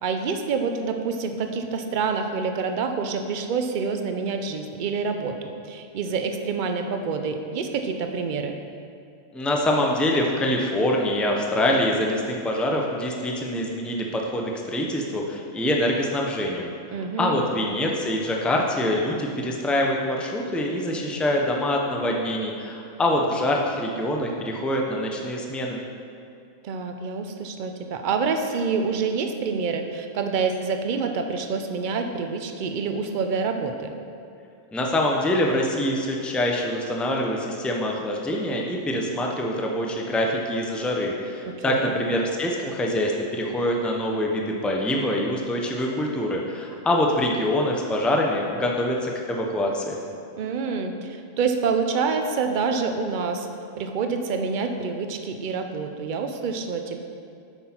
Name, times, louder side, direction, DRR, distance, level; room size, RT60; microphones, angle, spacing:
voice 1, 0.0-8.6 16.9-17.5 26.6-33.9 41.4-42.0 50.4-53.5 53.8-57.0, right 5 dB, 55° right, 5 dB, 0.6 m, -27 dB
voice 2, 9.3-16.7 17.2-25.8 34.7-50.0, left 1 dB, ahead, 0 dB, 0.4 m, -25 dB
8.0 x 5.9 x 4.4 m, 2.5 s
omnidirectional pair, 1.3 m